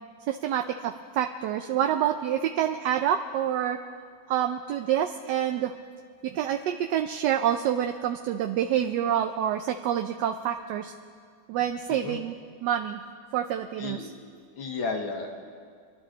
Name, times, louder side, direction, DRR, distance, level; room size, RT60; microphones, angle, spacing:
voice 1, 0.3-3.8 4.3-5.7 6.2-10.9 11.5-12.3 12.6-13.0 13.3-14.1, right 10 dB, 70° right, 5 dB, 1.1 m, -27 dB
voice 2, 11.9-12.2 13.8-14.1 14.6-15.4, left 4 dB, 80° left, 3 dB, 2.2 m, -33 dB
25.0 x 12.0 x 3.9 m, 2.1 s
omnidirectional pair, 2.1 m